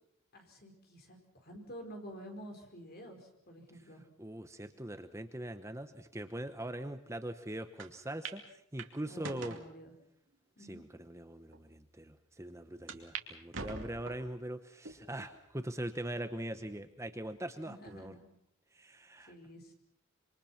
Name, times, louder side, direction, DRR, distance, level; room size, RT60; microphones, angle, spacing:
voice 1, 0.3-4.0 9.1-9.9 10.6-10.8 17.6-18.3 19.2-19.7, equal, 50° left, 3 dB, 4.9 m, -50 dB
voice 2, 4.2-9.6 10.6-18.1 18.7-19.3, right 1 dB, 15° right, 9 dB, 0.9 m, -42 dB
sound 1, 7.8-7.9 8.2-8.4 8.8-9.7 10.3-10.4 11.1-11.2 11.5-11.6 12.9-13.3 13.5-14.3 14.9-15.3 15.8-15.9 17.1-17.5, right 4 dB, 60° right, 2.6 m, -43 dB
26.5 x 25.0 x 5.9 m, 0.73 s
head